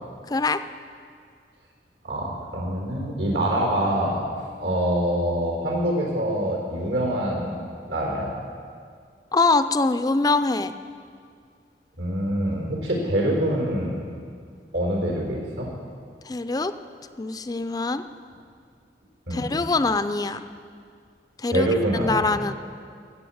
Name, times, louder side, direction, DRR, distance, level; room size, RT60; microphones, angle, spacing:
voice 1, 0.3-0.6 9.3-10.7 16.2-16.7 17.2-18.0 19.3-20.4 21.4-21.7 22.0-22.5, left 3 dB, 20° left, 11 dB, 0.4 m, -23 dB
voice 2, 2.0-4.2 4.6-7.5 7.9-8.3 12.0-14.0 14.7-15.7 19.3-19.5 21.5-22.2, right 1 dB, 85° right, -1 dB, 4.0 m, -25 dB
15.5 x 7.0 x 8.6 m, 2.1 s
head